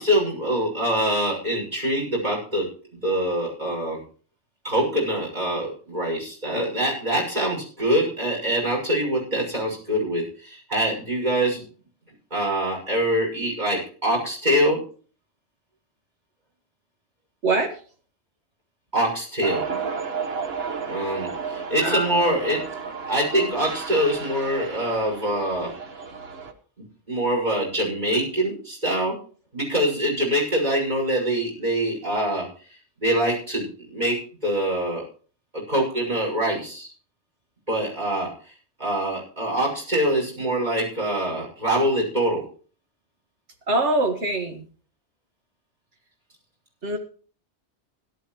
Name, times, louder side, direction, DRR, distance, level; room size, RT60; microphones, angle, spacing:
voice 1, 0.0-2.7 3.0-4.0 4.6-11.6 12.3-14.8 18.9-19.6 20.9-22.6 23.1-25.7 27.1-29.2 29.5-32.4 33.0-35.0 35.7-36.9 37.7-38.3 38.8-42.4, right 1 dB, 40° right, -3 dB, 6.4 m, -24 dB
voice 2, 17.4-17.8 21.8-22.4 43.7-44.7 46.8-47.0, right 2 dB, 90° right, 5 dB, 2.1 m, -24 dB
sound 1, 19.4-26.5, right 5 dB, 65° right, 1.5 m, -33 dB
17.0 x 12.0 x 3.1 m, 0.40 s
omnidirectional pair, 1.1 m